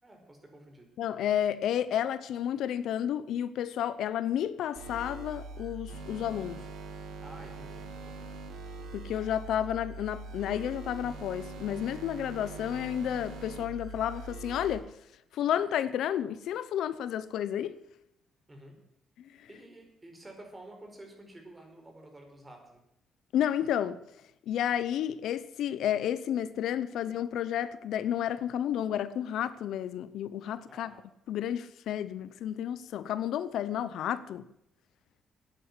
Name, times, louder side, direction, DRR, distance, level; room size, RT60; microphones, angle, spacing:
voice 1, 0.0-0.9 7.0-8.4 18.5-18.8 19.5-22.8 26.9-27.0 30.7-31.1, right 1 dB, 20° right, 4.9 m, -51 dB
voice 2, 1.0-6.6 8.9-14.9 15.3-17.8 19.3-19.5 23.3-24.0 24.5-30.9 31.3-34.5, left 10 dB, 80° left, 0.7 m, -31 dB
sound 1, 4.8-14.8, right 3 dB, 80° right, 3.0 m, -43 dB
10.0 x 9.9 x 9.9 m
cardioid pair, 90°, 0 cm